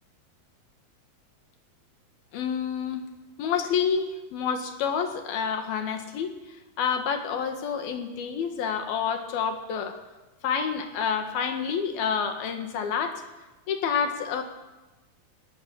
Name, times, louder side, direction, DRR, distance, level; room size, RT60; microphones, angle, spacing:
voice 1, 2.3-3.1 3.4-6.3 6.8-10.0 10.4-13.2 13.7-14.4, left 7 dB, 70° left, 6 dB, 3.6 m, -28 dB
19.0 x 17.5 x 8.6 m, 1.1 s
omnidirectional pair, 4.6 m